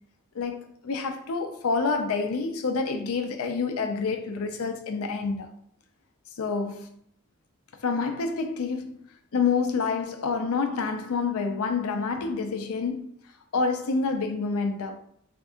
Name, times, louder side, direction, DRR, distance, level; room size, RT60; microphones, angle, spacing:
voice 1, 0.3-5.5 6.4-7.0 7.8-9.0 9.3-13.1 13.5-15.0, left 4 dB, 80° left, 0.5 m, -28 dB
3.6 x 2.6 x 2.4 m
head